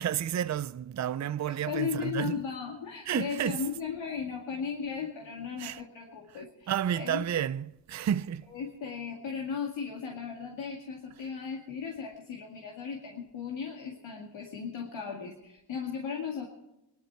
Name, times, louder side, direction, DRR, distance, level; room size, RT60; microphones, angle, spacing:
voice 1, 0.0-2.4 3.1-3.6 5.6-5.8 6.3-8.5, right 10 dB, 40° right, 0.6 m, -31 dB
voice 2, 1.7-7.2 8.5-16.5, left 6 dB, 80° left, 2.2 m, -36 dB
22.5 x 12.0 x 4.5 m
cardioid pair, 70°, 45 cm